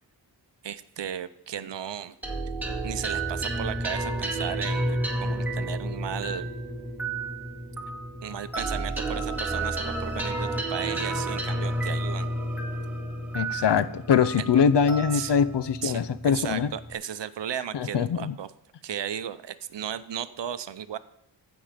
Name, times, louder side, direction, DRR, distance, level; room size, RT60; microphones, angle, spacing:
voice 1, 0.6-2.2 2.8-6.5 8.2-12.3 14.4-14.6 15.1-15.3 15.8-18.5 18.8-21.0, right 9 dB, 65° right, 14 dB, 0.7 m, -35 dB
sound 1, 2.2-16.9, right 1 dB, 5° right, 2.0 m, -31 dB
voice 2, 13.3-16.7 17.7-18.4, left 7 dB, 60° left, 16 dB, 0.6 m, -23 dB
14.5 x 5.4 x 5.1 m, 0.80 s
cardioid pair, 60°, 46 cm